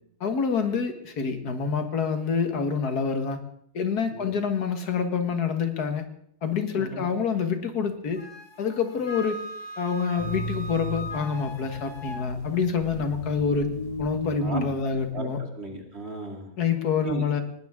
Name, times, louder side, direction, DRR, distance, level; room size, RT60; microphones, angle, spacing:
voice 1, 0.2-3.4 3.7-6.0 6.4-8.2 8.6-9.4 9.8-13.7 14.0-15.4 16.6-17.4, left 6 dB, 80° left, 7 dB, 2.0 m, -27 dB
Wind instrument woodwind instrument, 8.2-12.2, equal, 50° left, 1.8 m, -39 dB
sound 1, 10.2-15.2, left 1 dB, 20° left, 2.3 m, -34 dB
voice 2, 14.9-16.5 17.0-17.4, right 2 dB, 40° right, 2 dB, 2.7 m, -36 dB
19.5 x 19.0 x 3.6 m, 0.69 s
omnidirectional pair, 1.6 m